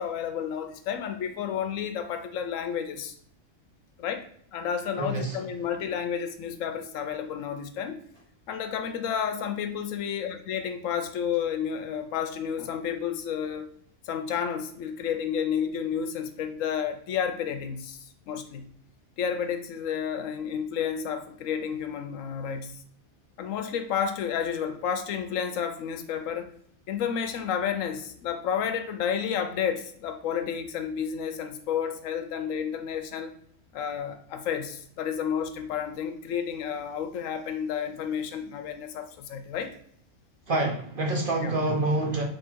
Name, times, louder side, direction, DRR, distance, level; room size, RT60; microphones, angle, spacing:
voice 1, 0.0-3.1 4.0-8.0 8.5-13.7 14.1-18.7 19.2-22.8 23.4-26.5 26.9-33.3 33.7-39.7 41.4-41.5, left 8 dB, 80° left, 7 dB, 1.0 m, -31 dB
voice 2, 5.0-5.4 40.5-42.2, right 2 dB, 50° right, 1 dB, 0.7 m, -27 dB
3.6 x 2.7 x 4.4 m, 0.64 s
omnidirectional pair, 1.4 m